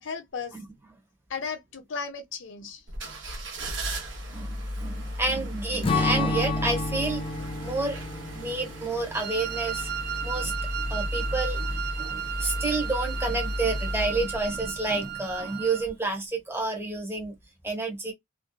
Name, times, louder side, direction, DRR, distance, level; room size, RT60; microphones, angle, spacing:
voice 1, 0.0-0.6 1.3-2.8, left 5 dB, 80° left, 0.6 m, -35 dB
sound 1, 2.9-15.4 15.8-15.9, equal, 75° right, 1.0 m, -34 dB
voice 2, 4.3-7.2 7.6-8.0 8.3-9.9 10.2-17.3 17.6-18.1, right 3 dB, 15° right, 0.9 m, -30 dB
Strum, 5.8-10.5, left 3 dB, 30° left, 0.4 m, -31 dB
Wind instrument woodwind instrument, 9.1-15.9, right 9 dB, 55° right, 0.4 m, -35 dB
2.5 x 2.3 x 2.2 m
head